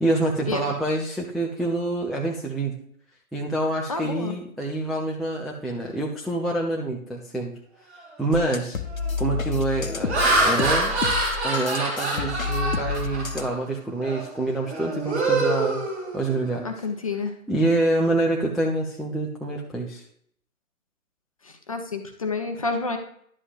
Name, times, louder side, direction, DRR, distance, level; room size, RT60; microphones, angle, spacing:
voice 1, 0.0-2.7 3.3-7.5 8.2-8.8 9.2-11.0 11.4-15.8 16.1-16.7 17.5-20.0, right 2 dB, ahead, -4 dB, 0.4 m, -26 dB
voice 2, 3.9-4.4 16.6-17.3 21.4-23.0, left 3 dB, 25° left, 5 dB, 0.7 m, -29 dB
Laughter, 8.0-8.3 8.8-9.1 9.8-13.6 14.0-14.3 14.6-16.6, right 2 dB, 45° right, 2.7 m, -26 dB
sound 1, 8.3-13.6, left 5 dB, 65° left, 0.9 m, -30 dB
11.0 x 7.8 x 2.5 m, 0.64 s
figure-of-eight pair, 140°, 44 cm